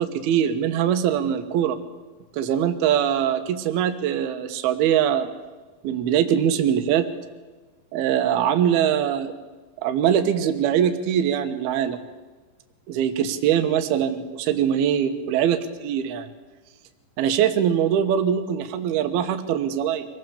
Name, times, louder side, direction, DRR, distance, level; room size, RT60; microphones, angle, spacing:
voice 1, 0.0-1.8 2.3-5.3 5.8-7.1 7.9-9.3 9.8-12.0 12.9-16.3 17.2-20.1, right 9 dB, 70° right, 9 dB, 2.6 m, -22 dB
25.0 x 18.0 x 7.1 m, 1.3 s
omnidirectional pair, 5.5 m